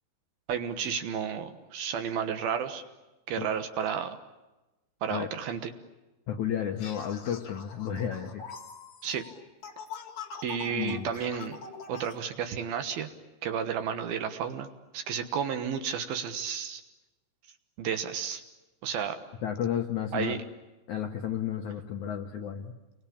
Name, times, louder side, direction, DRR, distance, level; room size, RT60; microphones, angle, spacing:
voice 1, 0.5-2.8 3.3-4.2 5.0-5.7 9.0-9.2 10.4-11.6 11.9-13.1 13.4-14.7 14.9-16.8 17.8-18.4 18.8-19.2 20.1-20.4, right 7 dB, 65° right, 9 dB, 2.9 m, -32 dB
voice 2, 6.3-8.5 10.7-11.1 19.4-20.4 20.9-22.7, left 9 dB, 70° left, 4 dB, 1.9 m, -32 dB
sound 1, 6.8-12.2, left 5 dB, 45° left, 2.1 m, -44 dB
29.0 x 23.5 x 8.7 m, 1.1 s
omnidirectional pair, 5.1 m